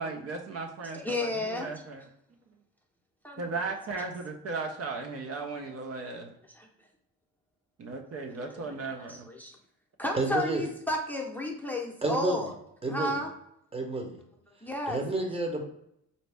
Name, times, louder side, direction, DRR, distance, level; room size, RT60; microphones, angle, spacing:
voice 1, 0.0-2.0 3.4-6.3 7.8-9.3, right 3 dB, 55° right, 3 dB, 0.7 m, -36 dB
voice 2, 0.9-1.7 3.2-3.5 6.5-6.7 9.1-9.5 10.0-12.5 12.9-13.3 14.6-15.0, left 1 dB, 5° left, 0 dB, 0.7 m, -32 dB
voice 3, 10.1-10.7 12.0-12.5 12.8-13.2 13.7-14.2 14.9-15.6, right 2 dB, 20° right, 3 dB, 0.9 m, -30 dB
4.0 x 2.7 x 3.4 m, 0.76 s
cardioid pair, 90°, 30 cm